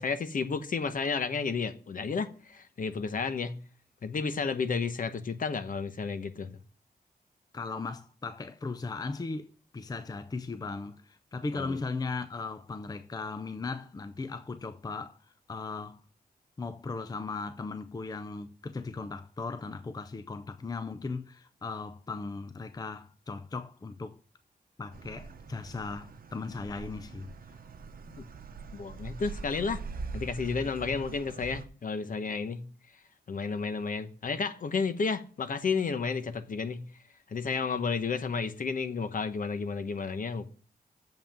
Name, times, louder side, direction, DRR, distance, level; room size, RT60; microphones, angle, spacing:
voice 1, 0.0-3.6 4.0-6.5 11.5-11.8 28.1-28.2 28.7-29.8 30.1-32.7 33.3-36.9 37.3-40.5, left 5 dB, 55° left, 0.9 m, -32 dB
voice 2, 7.5-16.0 16.6-24.2 24.8-27.6, left 4 dB, 25° left, 0.5 m, -37 dB
sound 1, 24.9-31.7, right 4 dB, 65° right, 0.8 m, -43 dB
7.1 x 5.7 x 7.5 m
wide cardioid pair, 150°, 16 cm